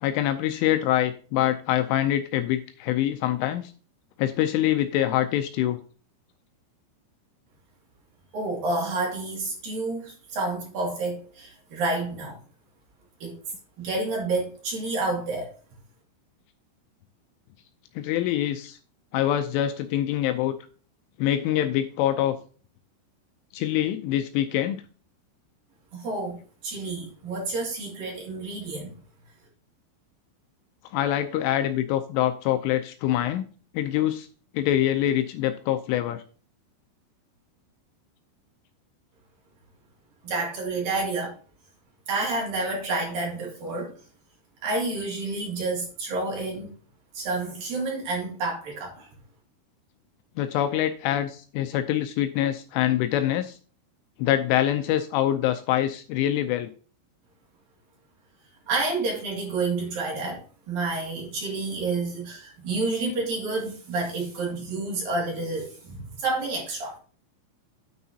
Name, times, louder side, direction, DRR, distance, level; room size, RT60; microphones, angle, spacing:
voice 1, 0.0-3.7 4.2-5.8 18.0-18.8 19.1-20.6 21.2-22.4 23.5-24.8 30.9-33.5 33.7-34.3 34.5-36.2 50.4-53.6 54.2-56.7, left 12 dB, 85° left, 2.9 m, -25 dB
voice 2, 8.3-12.4 13.2-13.4 13.8-15.5 25.9-28.9 40.2-41.4 42.1-43.9 44.6-46.7 47.1-49.1 58.7-67.0, right 3 dB, 50° right, 3.5 m, -29 dB
9.6 x 9.4 x 2.8 m
omnidirectional pair, 6.0 m